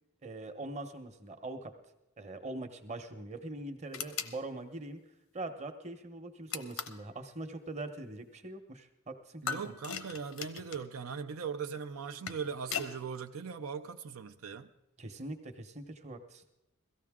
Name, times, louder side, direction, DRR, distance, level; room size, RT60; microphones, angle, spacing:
voice 1, 0.2-1.7 2.2-5.0 5.3-9.7 15.0-16.4, right 2 dB, 35° right, 0.9 m, -42 dB
sound 1, 3.9-4.4 6.5-7.0 9.5-10.9 12.0-12.9, left 7 dB, 90° left, 0.9 m, -39 dB
voice 2, 9.4-14.7, right 6 dB, 85° right, 0.5 m, -39 dB
17.0 x 14.5 x 3.6 m
head